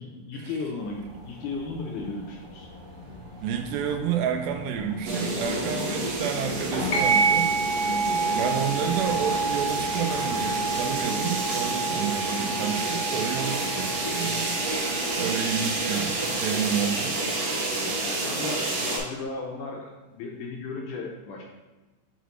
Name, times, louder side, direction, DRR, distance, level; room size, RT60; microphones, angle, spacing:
voice 1, 0.0-2.7 7.8-8.3 18.0-21.4, left 3 dB, 80° left, -1 dB, 2.0 m, -35 dB
sound 1, 0.7-17.0, left 2 dB, 40° right, 1.0 m, -41 dB
voice 2, 3.4-7.5 8.3-14.6 15.2-17.2, right 8 dB, 85° right, 5 dB, 2.4 m, -30 dB
sound 2, 5.0-19.0, right 2 dB, 60° right, 2.0 m, -29 dB
sound 3, 6.9-15.9, right 4 dB, 60° left, 1.3 m, -29 dB
8.2 x 4.1 x 3.1 m, 1.2 s
omnidirectional pair, 4.2 m